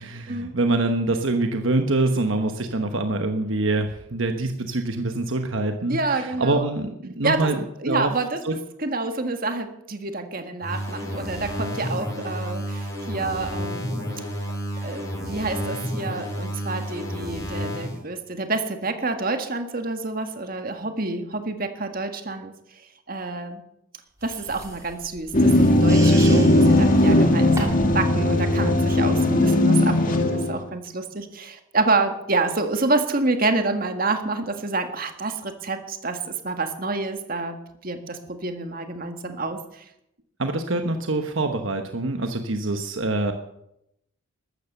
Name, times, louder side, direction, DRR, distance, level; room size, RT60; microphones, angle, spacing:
voice 1, 0.0-8.1 8.4-8.5 40.4-43.3, right 2 dB, 65° right, 6 dB, 1.1 m, -25 dB
voice 2, 5.9-6.7 7.2-7.5 7.8-8.4 8.8-14.1 14.8-22.5 23.1-23.6 24.2-37.6 37.8-39.9, right 3 dB, 45° right, 6 dB, 1.7 m, -28 dB
sound 1, 10.6-18.0, equal, 15° left, 5.7 m, -31 dB
sound 2, 24.2-28.0, right 2 dB, 15° right, 2.9 m, -37 dB
sound 3, 25.3-30.6, left 1 dB, 40° left, 2.1 m, -18 dB
14.0 x 13.0 x 6.7 m, 0.79 s
head